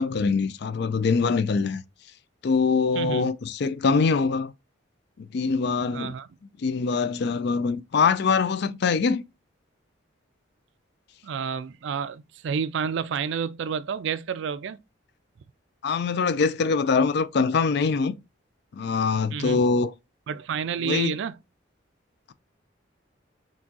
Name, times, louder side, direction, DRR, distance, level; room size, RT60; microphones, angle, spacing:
voice 1, 0.0-1.8 2.4-4.5 5.2-6.1 6.6-9.2 15.8-18.2 18.7-19.9 20.8-21.2, left 5 dB, 55° left, 0.4 m, -23 dB
voice 2, 2.9-3.3 5.9-6.3 11.2-14.8 19.3-19.6 20.3-21.4, right 6 dB, 65° right, 0.3 m, -29 dB
4.4 x 2.9 x 2.8 m
head